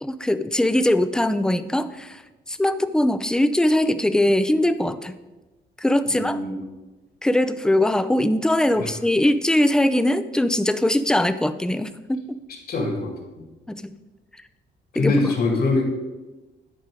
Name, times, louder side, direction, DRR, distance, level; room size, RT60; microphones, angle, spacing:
voice 1, 0.0-2.2 2.5-5.1 5.8-6.4 7.2-12.2 13.7-13.9 15.0-15.1, left 1 dB, 5° left, 11 dB, 0.4 m, -21 dB
voice 2, 6.1-6.6 8.7-8.9 12.7-13.5 14.9-15.8, left 2 dB, 50° left, 2 dB, 2.2 m, -24 dB
10.5 x 4.8 x 4.8 m, 1.1 s
cardioid pair, 90°, 20 cm